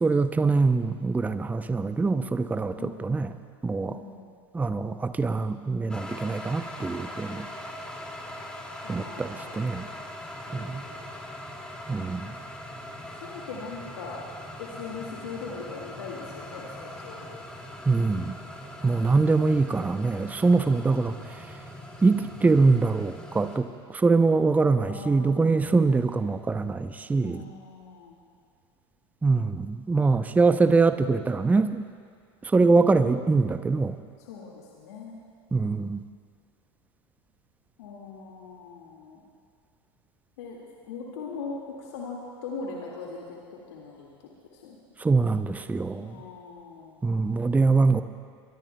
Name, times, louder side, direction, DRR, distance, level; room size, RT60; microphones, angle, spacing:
voice 1, 0.0-3.3 3.6-4.0 4.5-7.5 8.9-9.9 10.5-10.9 11.9-12.3 17.9-18.3 18.8-21.5 22.0-27.4 29.2-31.9 32.4-34.0 35.5-36.0 45.0-46.1 47.0-48.0, right 3 dB, 10° right, 10 dB, 0.6 m, -23 dB
voice 2, 3.9-4.3 6.9-7.4 8.8-9.7 10.5-11.2 13.2-14.2 14.6-17.4 20.5-21.0 24.9-26.0 27.2-28.2 32.6-33.0 34.2-35.2 37.8-39.2 40.4-40.6 40.8-44.8 46.0-47.0, left 4 dB, 75° left, -2 dB, 2.0 m, -41 dB
sound 1, 5.9-23.6, left 1 dB, 5° left, 2.3 m, -41 dB
24.0 x 22.0 x 2.2 m, 2.1 s
hypercardioid pair, 90°, 14 cm